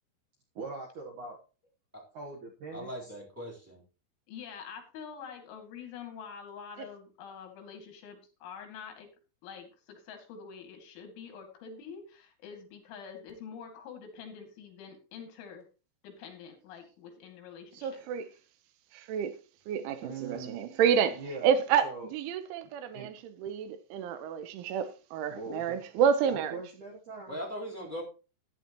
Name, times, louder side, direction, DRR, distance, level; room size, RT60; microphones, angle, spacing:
voice 1, 0.6-1.4 2.1-3.1 20.0-20.6 21.2-21.5 21.8-22.1 22.9-23.1 25.3-25.8 26.3-27.4, right 3 dB, 65° right, 2.0 m, -41 dB
voice 2, 2.7-3.8 27.3-28.0, equal, 5° right, 2.9 m, -39 dB
voice 3, 4.3-9.1 9.4-15.6 16.0-18.0, left 6 dB, 85° left, 4.8 m, -46 dB
voice 4, 17.8-18.3 18.9-19.4 19.7-26.6, right 8 dB, 90° right, 3.5 m, -29 dB
14.0 x 10.0 x 3.0 m
omnidirectional pair, 5.3 m